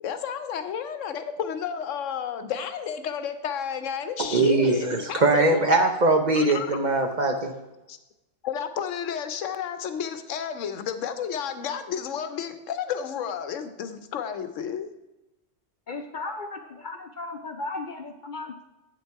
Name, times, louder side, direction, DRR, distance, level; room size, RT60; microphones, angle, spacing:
voice 1, 0.0-5.6 6.3-6.7 7.9-8.0 8.4-14.9, left 8 dB, 80° left, 10 dB, 1.0 m, -32 dB
voice 2, 4.2-7.5, right 2 dB, 45° right, 5 dB, 0.7 m, -21 dB
voice 3, 15.9-18.6, left 3 dB, 55° left, 6 dB, 0.6 m, -36 dB
8.0 x 7.1 x 4.6 m, 1.0 s
omnidirectional pair, 1.3 m